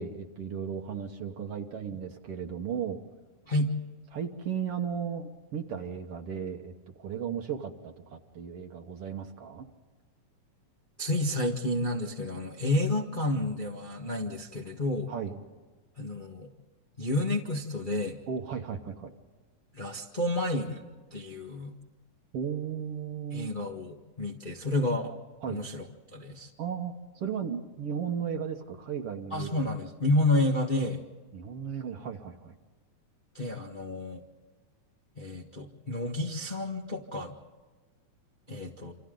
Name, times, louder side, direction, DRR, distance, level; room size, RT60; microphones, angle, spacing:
voice 1, 0.0-3.0 4.1-9.7 15.1-15.4 18.3-19.1 22.3-23.5 25.4-25.6 26.6-29.5 31.3-32.5, right 7 dB, 55° right, 4 dB, 2.0 m, -35 dB
voice 2, 11.0-15.1 16.0-16.5 17.0-18.2 19.7-20.8 21.1-21.7 23.3-25.1 25.5-25.8 26.1-26.5 29.3-31.0 33.3-34.2 35.2-37.3 38.5-38.9, left 1 dB, 30° left, 0 dB, 0.9 m, -30 dB
28.5 x 27.0 x 3.9 m, 1.3 s
omnidirectional pair, 3.6 m